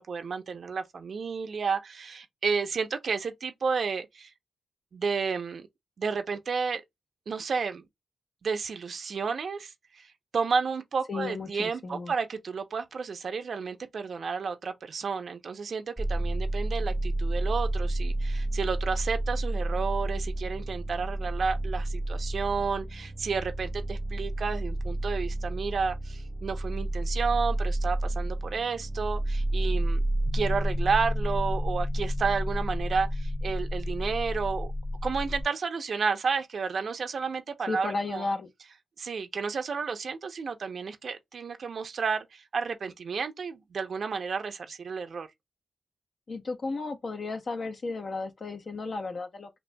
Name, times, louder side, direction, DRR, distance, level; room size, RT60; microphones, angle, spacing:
voice 1, 0.0-4.3 4.9-5.7 6.0-6.8 7.3-7.9 8.4-30.0 30.3-34.7 35.0-38.3 39.0-45.3, right 5 dB, 65° right, 0.6 m, -31 dB
voice 2, 11.1-12.1 37.7-38.5 46.3-49.5, left 3 dB, 55° left, 0.8 m, -34 dB
sound 1, 16.0-30.3, right 1 dB, 10° right, 0.3 m, -30 dB
sound 2, 30.3-35.4, left 1 dB, 20° left, 0.8 m, -30 dB
3.9 x 2.7 x 2.3 m
cardioid pair, 65°, 0 cm